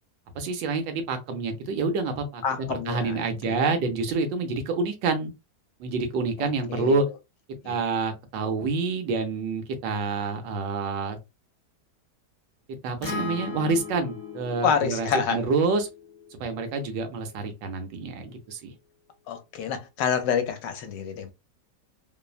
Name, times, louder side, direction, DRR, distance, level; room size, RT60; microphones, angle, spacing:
voice 1, 0.4-5.3 5.8-7.1 7.6-11.2 12.8-15.9 16.4-18.7, right 4 dB, 80° right, 1.3 m, -27 dB
voice 2, 2.4-3.7 6.7-7.1 7.6-7.8 14.6-15.4 19.3-21.3, left 7 dB, 75° left, 1.2 m, -28 dB
Acoustic guitar, 13.0-17.3, left 4 dB, 60° left, 0.9 m, -38 dB
3.2 x 2.1 x 2.3 m
omnidirectional pair, 2.0 m